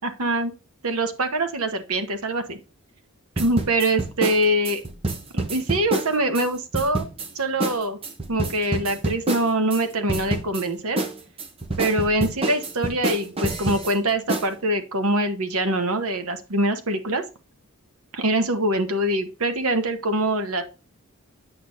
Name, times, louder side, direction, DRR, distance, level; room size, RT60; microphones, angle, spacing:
voice 1, 0.0-0.5 0.8-2.6 3.4-4.8 5.3-7.0 7.3-8.0 8.3-11.0 11.8-17.2 18.1-20.6, right 1 dB, 75° right, 7 dB, 1.3 m, -24 dB
sound 1, 3.4-6.5 6.7-7.3 7.6-7.8 8.0-9.8 10.1-10.6 11.0-13.9 14.3-14.5, right 2 dB, 25° right, 0.8 m, -27 dB
8.5 x 6.0 x 2.7 m, 0.31 s
head